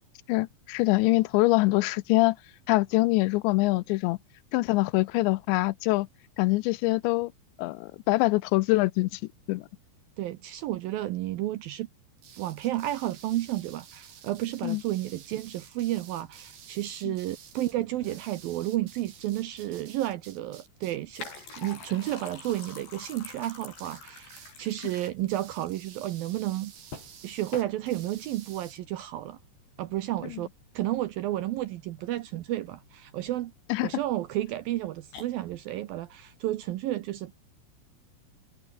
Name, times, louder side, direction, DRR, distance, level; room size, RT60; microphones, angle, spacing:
voice 1, 0.3-2.4 2.7-4.2 4.5-6.1 6.4-7.3 7.6-9.2 9.5-9.7 14.6-14.8 17.1-17.2 33.7-33.9, left 21 dB, 90° left, 2.9 m, -24 dB
voice 2, 10.2-11.9 12.4-21.3 21.6-26.7 27.2-29.4 29.8-30.5 30.7-33.5 33.8-37.6, right 14 dB, 75° right, 2.2 m, -32 dB
sound 1, 12.2-23.2 23.4-24.0 24.3-24.6 24.8-28.8, right 8 dB, 60° right, 4.8 m, -51 dB
sound 2, 17.3-36.8, left 4 dB, 65° left, 9.5 m, -49 dB
omnidirectional pair, 5.1 m